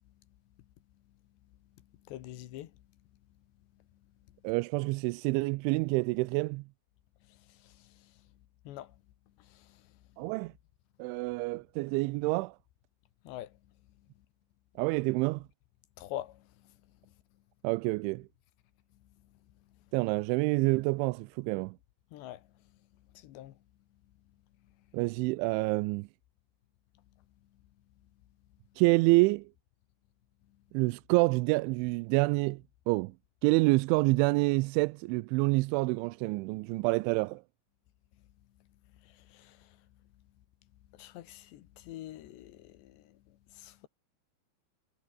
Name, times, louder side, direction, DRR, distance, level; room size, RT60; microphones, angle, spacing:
voice 1, 1.5-2.8 3.7-4.4 7.2-8.3 8.6-9.0 9.4-10.3 13.2-13.6 14.0-14.1 16.0-17.2 19.0-19.4 19.7-19.8 22.1-23.6 24.6-25.0 26.9-27.6 30.5-30.6 38.6-38.7 38.9-40.1 40.9-43.9, left 14 dB, 70° left, 3.4 m, -48 dB
voice 2, 4.4-6.6 10.2-10.5 11.0-12.6 14.8-15.5 17.6-18.3 19.9-21.8 24.9-26.1 28.8-29.5 30.7-33.1 33.4-37.4, right 24 dB, 85° right, 2.9 m, -27 dB
omnidirectional pair, 5.5 m